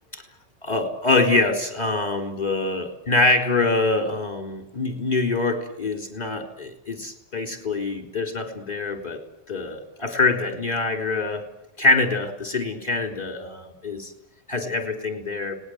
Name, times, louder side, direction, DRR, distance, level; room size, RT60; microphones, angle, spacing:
voice 1, 0.6-9.2 9.5-11.4 11.8-14.1 14.5-15.5, left 3 dB, 35° left, 4 dB, 3.9 m, -24 dB
30.0 x 19.5 x 7.9 m, 0.86 s
omnidirectional pair, 1.2 m